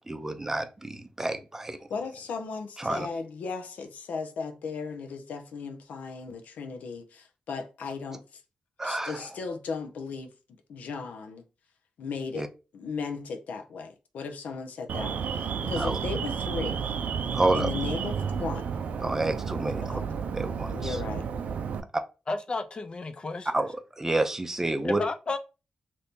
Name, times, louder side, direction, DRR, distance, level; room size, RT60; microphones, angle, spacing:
voice 1, 0.1-1.8 2.8-3.1 8.8-9.3 12.3-12.5 15.8-16.0 17.3-17.7 19.0-20.0 20.3-21.0 23.5-25.0, right 2 dB, 15° right, 0.5 m, -29 dB
voice 2, 1.9-8.4 8.8-10.3 10.7-11.5 12.0-12.4 12.7-16.8 17.5-18.8 19.8-20.1 20.7-21.2, left 5 dB, 85° left, 0.5 m, -36 dB
Alarm, 14.9-21.8, right 6 dB, 80° right, 0.4 m, -31 dB
voice 3, 22.3-23.5 24.8-25.4, left 3 dB, 35° left, 0.5 m, -32 dB
2.8 x 2.6 x 3.5 m
cardioid pair, 95°, 3 cm